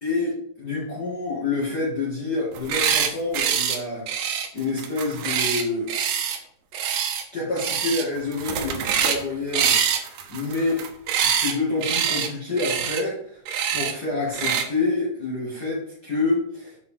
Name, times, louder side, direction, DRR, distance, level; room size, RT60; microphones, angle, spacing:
voice 1, 0.0-5.9 7.3-10.8 11.2-13.4 13.7-16.8, left 3 dB, 35° left, -8 dB, 2.3 m, -28 dB
sound 1, 2.5-3.1 3.3-3.8 4.1-6.4 6.7-7.2 7.6-8.0 8.3-9.2 9.5-11.5 11.8-12.3 12.6-13.0 13.5-13.9 14.3-14.6, right 8 dB, 80° right, 2.6 m, -24 dB
6.9 x 6.4 x 3.6 m, 0.67 s
omnidirectional pair, 3.9 m